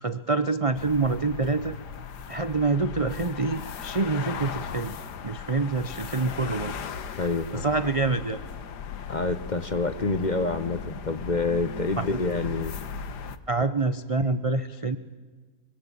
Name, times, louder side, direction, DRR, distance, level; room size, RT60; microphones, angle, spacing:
voice 1, 0.0-1.7 2.3-4.9 5.2-6.7 7.1-7.2 7.5-8.4 12.0-12.1 13.5-15.0, right 3 dB, 40° right, 12 dB, 0.4 m, -26 dB
sound 1, 0.7-13.4, left 6 dB, 70° left, 1.7 m, -37 dB
voice 2, 7.2-7.7 9.1-12.8, left 3 dB, 35° left, 11 dB, 0.9 m, -27 dB
24.5 x 24.0 x 8.7 m, 1.5 s
omnidirectional pair, 1.9 m